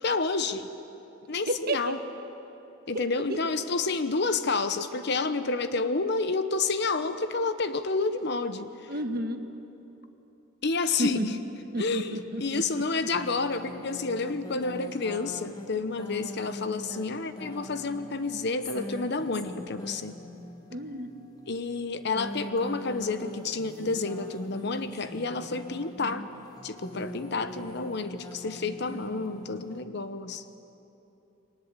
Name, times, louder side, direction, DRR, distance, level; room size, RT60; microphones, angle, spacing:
voice 1, 0.0-0.7 1.3-2.0 2.9-8.7 10.6-11.3 11.8-20.2 21.5-26.3 26.6-30.4, left 3 dB, 55° left, 11 dB, 0.9 m, -29 dB
voice 2, 1.5-1.9 2.9-3.0 3.3-3.4 8.9-9.4 11.0-11.3 11.7-12.6 20.7-21.1, right 1 dB, 50° right, 6 dB, 1.4 m, -31 dB
sound 1, 13.1-29.8, equal, 20° left, 1.5 m, -43 dB
23.0 x 19.5 x 8.3 m, 3.0 s
head